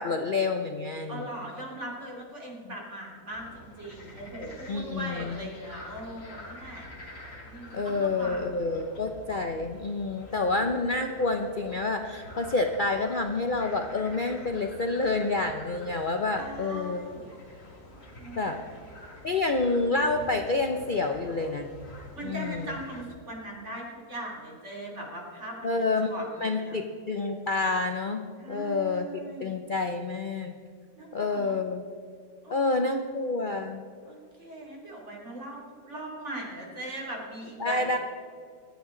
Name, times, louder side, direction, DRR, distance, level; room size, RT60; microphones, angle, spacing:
voice 1, 0.0-1.3 4.7-5.4 7.7-17.0 18.4-18.6 19.2-21.7 22.2-22.7 25.6-30.5 31.1-31.8 32.5-33.8 37.6-38.0, left 3 dB, 70° left, 4 dB, 0.4 m, -28 dB
voice 2, 1.1-6.8 7.4-8.6 16.4-17.3 18.2-18.7 22.1-25.7 26.1-26.8 28.4-29.6 31.0-31.5 32.4-33.0 34.1-38.0, right 1 dB, 40° right, -2 dB, 3.3 m, -40 dB
sound 1, 3.3-23.0, left 1 dB, 35° left, 2.3 m, -47 dB
27.0 x 9.4 x 3.8 m, 2.2 s
omnidirectional pair, 2.0 m